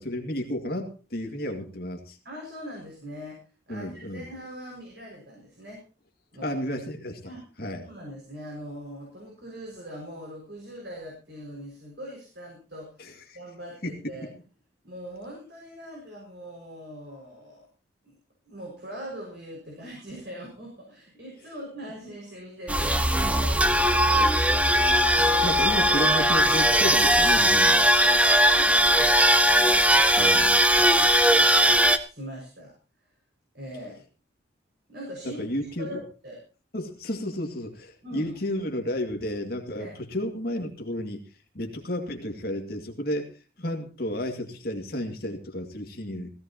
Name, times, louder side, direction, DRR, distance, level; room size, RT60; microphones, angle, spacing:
voice 1, 0.0-2.2 3.7-4.3 6.4-7.3 7.6-7.9 13.0-13.4 13.8-14.3 25.4-27.9 30.2-30.5 35.2-36.0 36.7-41.2 41.5-46.3, left 1 dB, 50° left, 4 dB, 2.2 m, -32 dB
voice 2, 2.2-5.8 6.3-6.5 7.2-7.5 7.8-14.3 14.8-17.7 18.0-18.1 18.5-23.6 25.1-26.0 28.4-30.3 30.7-32.7 33.5-34.0 34.9-35.4 35.8-36.4 38.0-38.3 39.8-40.0, equal, 55° right, -2 dB, 5.8 m, -41 dB
sound 1, 22.7-32.0, equal, 5° right, 0.8 m, -19 dB
18.0 x 16.5 x 2.9 m, 0.34 s
head